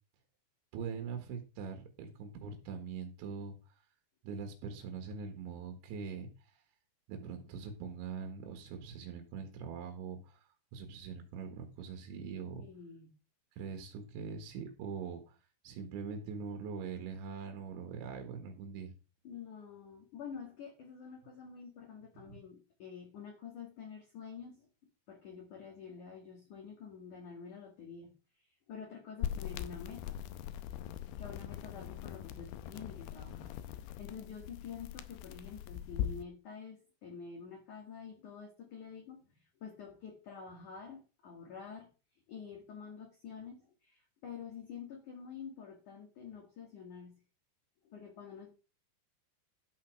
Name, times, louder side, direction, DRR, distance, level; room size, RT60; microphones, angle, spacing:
voice 1, 0.7-3.6 4.2-6.6 7.1-12.6 13.6-15.4 15.6-18.9 22.3-22.4, right 6 dB, 75° right, 5 dB, 3.9 m, -43 dB
voice 2, 12.5-13.1 19.2-30.2 31.2-41.9 42.3-47.2 47.8-48.5, left 6 dB, 50° left, 1 dB, 2.9 m, -48 dB
sound 1, 29.2-36.2, left 10 dB, 90° left, 2.3 m, -41 dB
12.5 x 5.7 x 6.1 m, 0.32 s
omnidirectional pair, 5.6 m